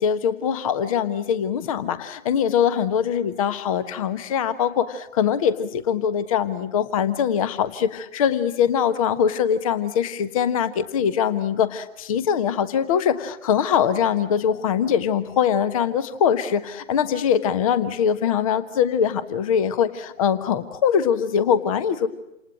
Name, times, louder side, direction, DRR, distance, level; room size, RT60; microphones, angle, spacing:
voice 1, 0.0-22.1, left 8 dB, 25° left, 14 dB, 1.3 m, -22 dB
28.5 x 28.0 x 6.2 m, 0.87 s
figure-of-eight pair, 135°, 39 cm